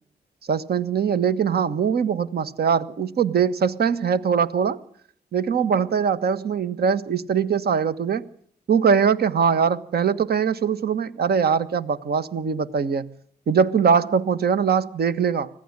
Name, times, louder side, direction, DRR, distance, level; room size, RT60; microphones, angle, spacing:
voice 1, 0.5-4.8 5.3-8.2 8.7-13.1 13.5-15.5, right 6 dB, 65° right, 13 dB, 1.6 m, -22 dB
26.0 x 17.5 x 9.9 m, 0.63 s
cardioid pair, 105°, 18 cm